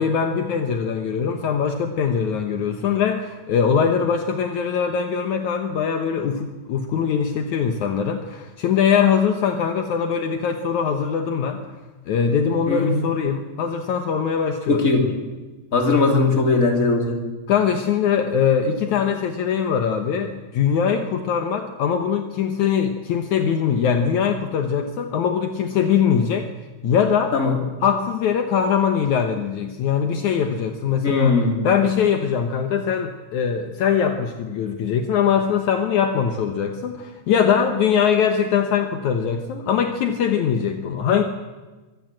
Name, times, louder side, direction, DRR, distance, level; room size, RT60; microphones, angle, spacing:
voice 1, 0.0-11.6 12.1-14.8 17.5-26.5 26.8-27.3 27.8-31.4 31.6-41.2, left 7 dB, 70° left, 6 dB, 2.5 m, -22 dB
voice 2, 12.7-13.0 14.7-15.1 15.7-17.2 27.3-27.6 31.0-31.6, left 3 dB, 25° left, 2 dB, 3.5 m, -19 dB
24.0 x 16.5 x 7.7 m, 1.2 s
omnidirectional pair, 3.6 m